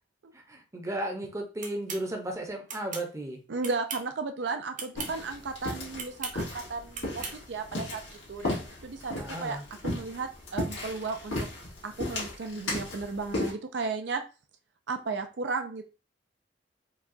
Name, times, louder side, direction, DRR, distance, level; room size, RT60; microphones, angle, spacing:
voice 1, 0.3-3.4 9.2-9.6, right 1 dB, 15° right, 3 dB, 0.7 m, -35 dB
sound 1, 1.6-2.0 2.7-3.1 3.6-4.1 4.7-5.1 5.9-6.4 6.9-7.4, right 5 dB, 45° right, 0.8 m, -38 dB
voice 2, 3.5-9.6 9.8-11.4 11.8-14.2 14.9-15.8, right 4 dB, 70° right, 6 dB, 0.5 m, -34 dB
sound 2, 4.9-13.5, left 1 dB, 85° left, 1.8 m, -36 dB
4.7 x 2.3 x 2.5 m, 0.33 s
head